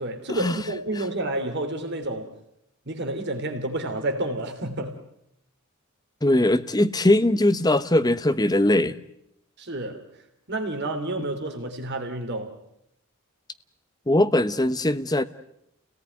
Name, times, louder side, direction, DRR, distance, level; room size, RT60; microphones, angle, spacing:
voice 1, 0.0-2.3 2.8-5.0 9.6-10.1 10.5-12.6, right 1 dB, 50° right, 5 dB, 3.2 m, -30 dB
voice 2, 6.2-9.0 14.1-15.2, left 1 dB, 15° left, 10 dB, 1.0 m, -20 dB
30.0 x 18.0 x 9.6 m, 0.81 s
head